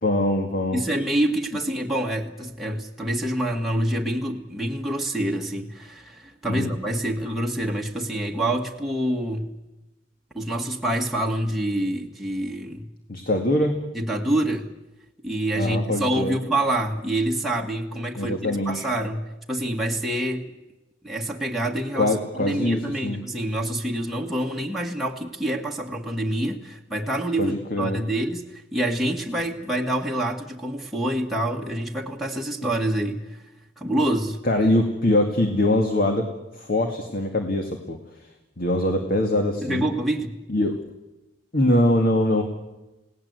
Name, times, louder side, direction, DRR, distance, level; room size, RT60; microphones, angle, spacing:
voice 1, 0.0-0.8 6.5-6.7 13.1-13.8 15.6-16.4 18.1-18.9 22.0-23.2 27.4-28.0 34.4-38.0 38.6-39.8 40.5-40.8 41.5-42.4, left 1 dB, 50° left, 4 dB, 2.1 m, -23 dB
voice 2, 0.7-9.5 10.3-12.9 13.9-14.7 15.2-20.5 21.0-33.4 33.8-34.4 39.6-40.3, right 1 dB, ahead, -1 dB, 1.7 m, -26 dB
29.0 x 18.0 x 8.1 m, 1.0 s
head